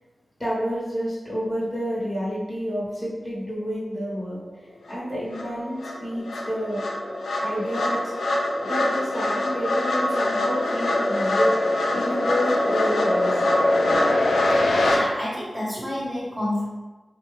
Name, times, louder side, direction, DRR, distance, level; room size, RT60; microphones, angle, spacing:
voice 1, 0.4-6.9 7.4-8.0 8.6-13.4 13.9-14.2 15.8-15.9, equal, 15° left, -8 dB, 1.0 m, -29 dB
sound 1, 4.9-5.0 5.3-15.0, left 1 dB, 90° left, 0.4 m, -23 dB
voice 2, 14.5-16.6, left 1 dB, 25° right, -8 dB, 0.9 m, -29 dB
2.6 x 2.1 x 3.0 m, 1.2 s
cardioid pair, 50°, 0 cm